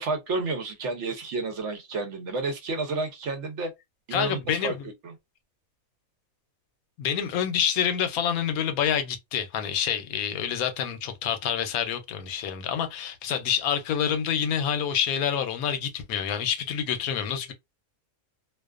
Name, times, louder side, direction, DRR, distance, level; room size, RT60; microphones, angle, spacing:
voice 1, 0.0-3.7 4.1-4.7 5.0-5.1, right 3 dB, 65° right, 0.8 m, -30 dB
voice 2, 4.1-4.9 7.0-17.5, left 8 dB, 85° left, 1.0 m, -27 dB
2.4 x 2.3 x 2.3 m
omnidirectional pair, 1.5 m